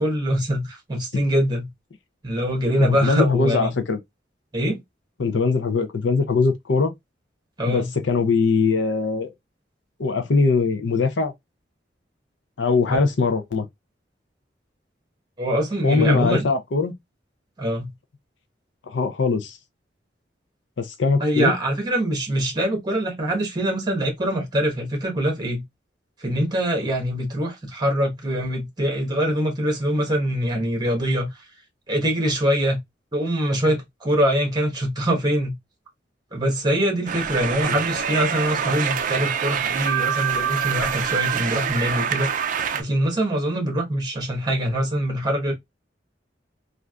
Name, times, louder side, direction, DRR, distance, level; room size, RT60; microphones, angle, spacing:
voice 1, 0.0-1.7 2.2-3.7 4.5-4.8 7.6-7.9 12.9-13.0 15.4-16.5 17.6-17.9 21.2-25.6 26.2-31.3 31.9-32.8 33.1-35.6 36.3-42.3 42.7-45.5, equal, 25° right, 1.2 m, -23 dB
voice 2, 2.8-4.0 5.2-6.9 7.7-9.3 10.0-11.3 12.6-13.7 15.8-16.9 18.9-19.6 20.8-21.5 37.7-37.8, left 4 dB, 85° left, 0.6 m, -21 dB
sound 1, 37.1-42.8, right 8 dB, 45° right, 0.4 m, -25 dB
3.3 x 2.5 x 2.3 m
head